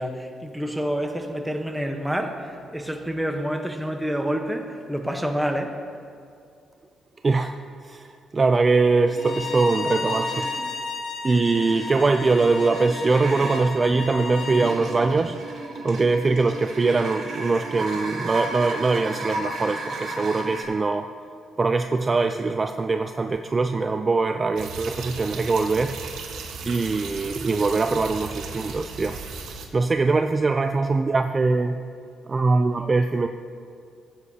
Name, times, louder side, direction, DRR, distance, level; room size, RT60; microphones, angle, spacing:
voice 1, 0.0-5.8, equal, 5° right, 4 dB, 1.0 m, -28 dB
voice 2, 7.2-7.5 7.8-10.5 11.2-15.4 15.8-21.1 21.6-26.0 26.7-29.2 29.7-31.9 32.3-33.3, right 3 dB, 30° right, 7 dB, 0.4 m, -22 dB
sound 1, 9.1-10.7 11.4-20.6, right 2 dB, 55° right, 2.0 m, -34 dB
Bowed string instrument, 9.2-14.7, left 4 dB, 45° left, 0.9 m, -33 dB
sound 2, 24.6-29.7, right 4 dB, 80° right, 1.3 m, -36 dB
16.0 x 8.2 x 2.8 m, 2.4 s
cardioid pair, 90°, 0 cm